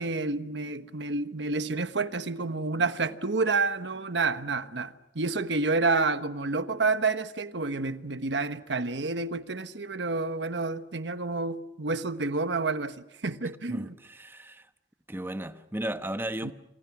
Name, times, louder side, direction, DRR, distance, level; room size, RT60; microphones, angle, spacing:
voice 1, 0.0-12.9 13.2-13.9 16.4-16.5, right 3 dB, 75° right, 1.2 m, -29 dB
voice 2, 13.7-14.7 15.1-16.5, right 1 dB, 10° right, 1.0 m, -35 dB
28.0 x 26.5 x 6.1 m
head